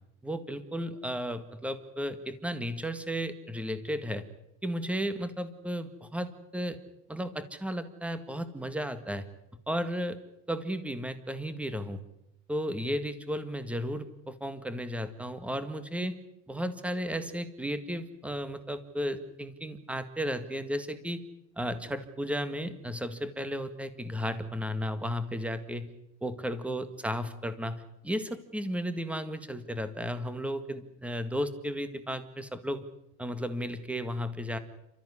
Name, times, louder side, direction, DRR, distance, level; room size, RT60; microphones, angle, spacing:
voice 1, 0.2-4.2 4.6-6.8 7.1-9.3 9.7-10.2 10.5-12.0 12.5-16.2 16.5-21.2 21.5-25.9 26.2-32.9 33.2-34.6, equal, 5° right, 11 dB, 1.8 m, -34 dB
28.5 x 14.0 x 9.9 m, 0.85 s
cardioid pair, 130°, 31 cm